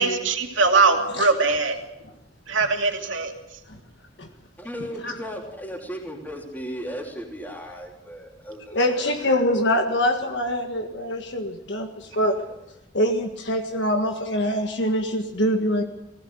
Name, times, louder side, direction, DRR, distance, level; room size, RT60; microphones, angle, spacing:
voice 1, 0.0-1.8 2.5-3.3, right 4 dB, 80° right, 3 dB, 2.6 m, -21 dB
voice 2, 4.6-9.1, equal, 10° left, -1 dB, 3.3 m, -36 dB
voice 3, 8.7-12.4 12.9-15.8, equal, 65° left, 4 dB, 1.7 m, -24 dB
19.5 x 16.5 x 8.2 m, 0.87 s
head